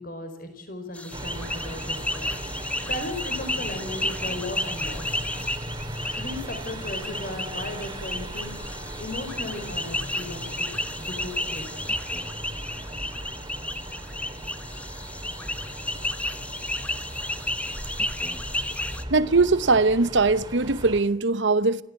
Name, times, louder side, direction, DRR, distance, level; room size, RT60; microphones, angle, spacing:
voice 1, 0.0-2.3 2.9-5.0 6.1-8.6 9.0-12.2, left 2 dB, 50° left, 4.7 m, -36 dB
sound 1, 0.9-19.0, left 1 dB, 5° left, 1.1 m, -32 dB
sound 2, 1.1-21.0, right 1 dB, 20° right, 2.7 m, -38 dB
voice 2, 19.1-21.8, right 3 dB, 70° right, 1.0 m, -21 dB
28.5 x 14.5 x 8.9 m
head